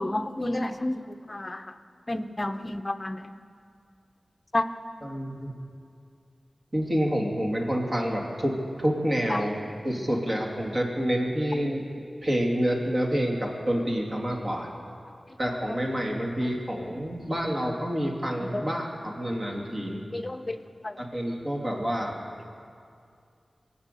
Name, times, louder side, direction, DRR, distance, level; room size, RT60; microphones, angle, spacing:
voice 1, 0.0-1.7 2.1-3.4 4.5-4.6 9.3-9.4 18.5-18.7 20.1-21.0, left 1 dB, 30° left, 9 dB, 0.7 m, -31 dB
voice 2, 5.0-5.5 6.7-9.6 9.8-11.9 12.2-14.7 15.4-20.1 21.0-22.2, equal, 35° right, -1 dB, 2.6 m, -28 dB
23.5 x 8.4 x 6.8 m, 2.4 s
wide cardioid pair, 85°, 0 cm